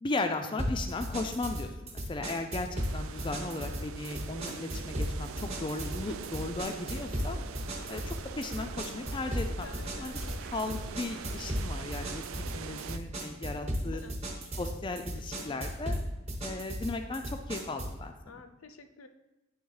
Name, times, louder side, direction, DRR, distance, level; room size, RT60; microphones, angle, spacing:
voice 1, 0.0-7.4 7.9-9.7 10.0-10.1 10.5-14.0 14.6-16.0 16.4-18.1, left 2 dB, 25° left, 6 dB, 0.3 m, -36 dB
sound 1, 0.6-18.0, equal, 30° right, 1.1 m, -36 dB
sound 2, 2.8-13.0, right 7 dB, 75° right, 0.3 m, -44 dB
voice 2, 3.5-3.8 9.5-10.4 13.5-14.1 14.4-14.5 14.9-15.7 18.3-19.1, left 4 dB, 80° left, 8 dB, 0.6 m, -51 dB
sound 3, 6.0-11.6, right 1 dB, 50° right, 0.8 m, -50 dB
9.7 x 3.6 x 4.7 m, 0.99 s
head